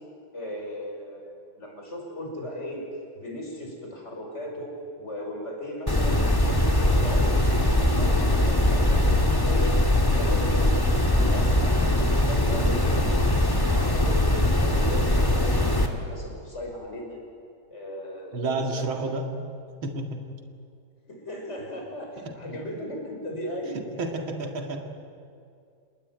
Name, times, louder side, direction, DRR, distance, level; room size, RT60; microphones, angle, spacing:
voice 1, 0.3-2.8 3.1-4.7 5.0-6.2 6.4-7.4 7.7-9.7 10.1-10.7 11.1-14.2 14.5-17.2 17.7-19.1 21.1-23.8, left 1 dB, 35° left, 0 dB, 6.3 m, -36 dB
sound 1, 5.9-15.9, left 1 dB, 10° left, 1.9 m, -21 dB
voice 2, 18.3-19.3 19.8-20.3 22.2-22.4 23.7-24.9, right 2 dB, 80° right, 4 dB, 2.8 m, -31 dB
28.5 x 20.5 x 9.2 m, 2.4 s
omnidirectional pair, 2.2 m